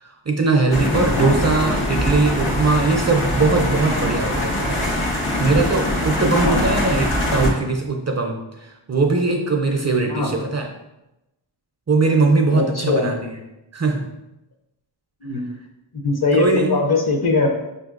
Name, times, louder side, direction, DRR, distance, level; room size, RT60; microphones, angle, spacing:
voice 1, 0.0-10.7 11.9-13.3 13.7-14.0 16.4-16.7, right 3 dB, 35° right, 2 dB, 0.4 m, -20 dB
sound 1, 0.7-7.5, left 1 dB, 80° left, 1.0 m, -22 dB
voice 2, 12.5-13.1 15.2-15.4 15.9-17.5, left 3 dB, 50° left, 2 dB, 0.7 m, -20 dB
5.5 x 2.6 x 2.4 m, 0.94 s
wide cardioid pair, 60°, 48 cm